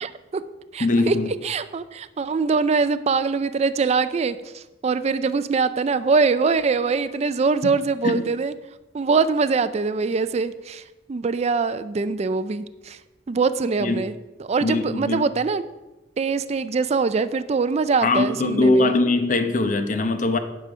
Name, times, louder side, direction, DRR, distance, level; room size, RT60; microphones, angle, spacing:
voice 1, 0.0-0.4 0.7-1.1 1.4-8.5 8.9-10.8 11.1-13.0 13.3-14.1 14.4-15.6 16.2-18.9, right 4 dB, 40° right, 0.4 m, -23 dB
voice 2, 0.8-1.3 7.6-7.7 8.0-8.3 13.8-14.1 14.6-15.3 18.0-20.4, left 2 dB, 45° left, 0.8 m, -21 dB
10.0 x 5.0 x 6.1 m
head